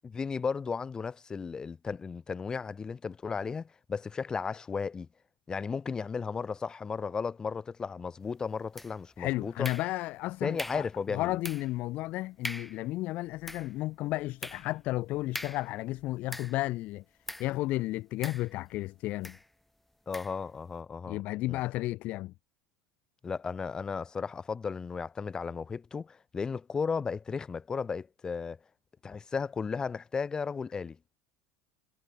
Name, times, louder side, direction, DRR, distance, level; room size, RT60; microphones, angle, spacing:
voice 1, 0.0-5.1 5.5-9.7 10.4-11.4 20.1-21.2 21.5-21.6 23.2-28.6 29.0-31.0, left 5 dB, 25° left, 2.8 m, -35 dB
sound 1, 8.8-9.2 9.6-10.2 10.6-11.0 11.4-11.8 12.1-12.2 12.4-12.8 13.3-16.7 17.3-17.6 18.2-18.8 19.2-19.5 20.1-20.4, left 1 dB, 5° left, 1.8 m, -42 dB
voice 2, 9.2-10.9 11.1-17.0 17.4-19.4 21.1-22.3, left 18 dB, 55° left, 1.0 m, -33 dB
hypercardioid pair, 80°, 3 cm